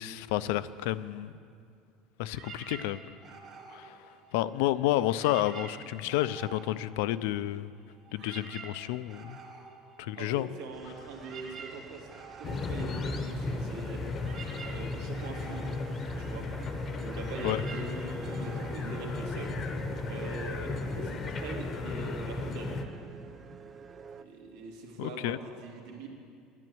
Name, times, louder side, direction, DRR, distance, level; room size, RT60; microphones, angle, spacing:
voice 1, 0.0-1.3 2.2-3.0 3.7-4.0 4.3-7.7 8.1-9.4 10.0-10.5 17.4-17.6 25.0-25.4, left 14 dB, 80° left, 15 dB, 0.4 m, -30 dB
sound 1, 2.3-4.7 5.1-7.6 7.9-19.8, right 5 dB, 35° right, 1.6 m, -49 dB
voice 2, 10.2-12.1 12.4-14.0 14.7-15.6 16.2-16.5 16.9-19.5 20.1-22.8 24.2-26.1, right 3 dB, 85° right, 0 dB, 2.4 m, -42 dB
sound 2, 10.7-24.2, right 5 dB, 20° right, 0.4 m, -50 dB
sound 3, 12.4-22.8, left 3 dB, 25° left, 0.7 m, -35 dB
11.0 x 10.5 x 7.8 m, 2.3 s
cardioid pair, 175°, 0 cm